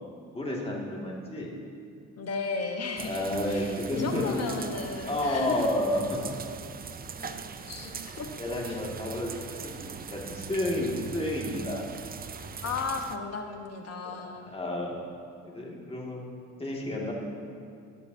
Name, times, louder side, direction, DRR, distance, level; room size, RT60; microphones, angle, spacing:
voice 1, 0.3-1.5 3.0-4.4 5.0-6.2 7.2-7.3 7.8-7.9 8.4-11.9 14.0-14.9 15.5-16.2 16.6-17.1, left 1 dB, 20° left, -3 dB, 2.1 m, -31 dB
voice 2, 2.2-5.7 7.7-8.3 8.7-8.8 12.6-14.5, left 4 dB, 55° left, 3 dB, 1.1 m, -35 dB
sound 1, 3.0-13.2, right 6 dB, 30° right, 0.5 m, -41 dB
18.5 x 6.9 x 2.7 m, 2.3 s
cardioid pair, 90°, 30 cm